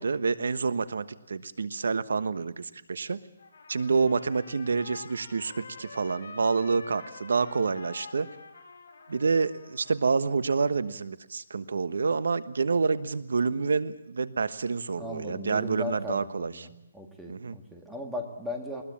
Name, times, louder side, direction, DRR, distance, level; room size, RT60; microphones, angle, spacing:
voice 1, 0.0-3.2 3.7-8.3 9.1-16.7 17.3-17.6, right 4 dB, 80° right, 15 dB, 1.2 m, -28 dB
Trumpet, 3.4-10.1, left 4 dB, 55° left, 6.5 m, -47 dB
voice 2, 15.0-16.7 16.9-18.8, left 1 dB, ahead, 1 dB, 1.9 m, -37 dB
21.0 x 20.5 x 8.7 m, 0.84 s
hypercardioid pair, 170°, 0 cm